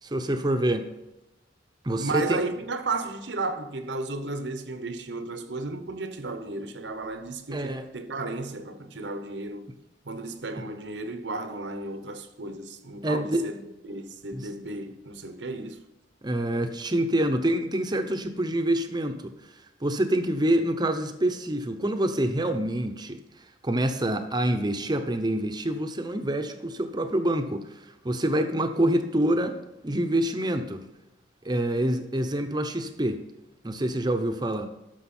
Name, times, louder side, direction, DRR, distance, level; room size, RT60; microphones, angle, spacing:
voice 1, 0.0-0.9 1.8-2.4 7.5-7.9 13.0-13.5 14.3-14.5 16.2-19.3 19.8-23.2 23.6-29.6 29.8-30.8 31.4-33.2 33.6-34.7, right 1 dB, 25° right, 0.8 m, -26 dB
voice 2, 2.0-9.7 10.0-15.8 17.9-18.0, right 3 dB, 70° right, 0.9 m, -34 dB
12.5 x 6.3 x 4.3 m
head